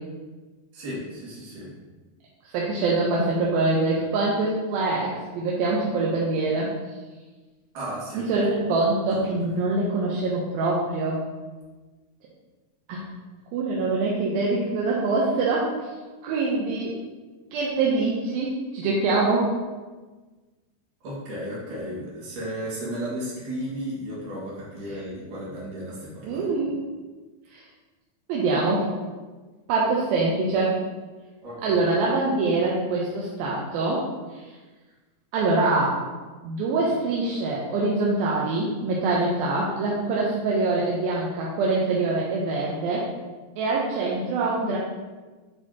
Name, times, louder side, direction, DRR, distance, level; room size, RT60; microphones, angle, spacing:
voice 1, 0.7-1.7 7.7-8.5 9.1-9.3 21.0-26.5 31.4-31.8, equal, 60° right, -7 dB, 3.2 m, -34 dB
voice 2, 2.4-6.7 8.1-11.2 12.9-13.0 13.5-15.9 16.2-17.0 17.5-19.5 24.9-25.0 26.2-26.8 27.5-27.6 28.3-28.9 29.7-30.8 31.6-34.0 34.3-34.4 35.3-36.0 36.4-43.1 43.6-44.8, right 3 dB, 75° right, -4 dB, 2.4 m, -24 dB
9.8 x 4.1 x 2.8 m, 1.3 s
omnidirectional pair, 4.7 m